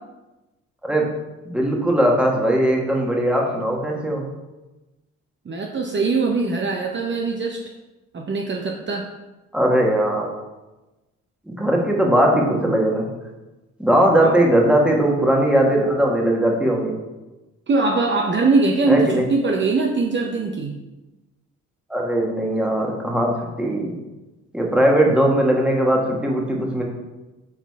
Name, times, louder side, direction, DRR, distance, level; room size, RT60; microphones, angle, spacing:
voice 1, 1.4-4.3 9.5-10.3 11.5-13.1 13.8-16.9 18.9-19.2 21.9-23.9 24.5-26.8, right 1 dB, 5° right, -1 dB, 1.5 m, -19 dB
voice 2, 5.5-7.6 8.1-9.1 14.2-14.4 17.7-20.7, right 3 dB, 40° right, 2 dB, 0.8 m, -21 dB
6.9 x 3.9 x 4.7 m, 1.1 s
cardioid pair, 90°, 30 cm